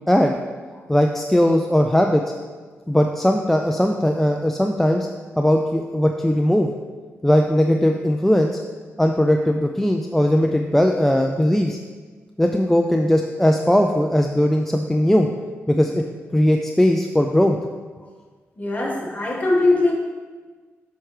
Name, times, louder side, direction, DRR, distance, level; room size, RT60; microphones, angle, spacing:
voice 1, 0.9-2.2 2.9-5.1 5.4-6.7 7.2-8.6 9.0-11.8 12.4-15.3 15.7-16.0 16.3-17.6, equal, 5° left, 3 dB, 0.4 m, -19 dB
voice 2, 18.6-19.9, left 2 dB, 30° left, -3 dB, 1.6 m, -20 dB
7.8 x 5.9 x 3.2 m, 1.4 s
cardioid pair, 95°, 5 cm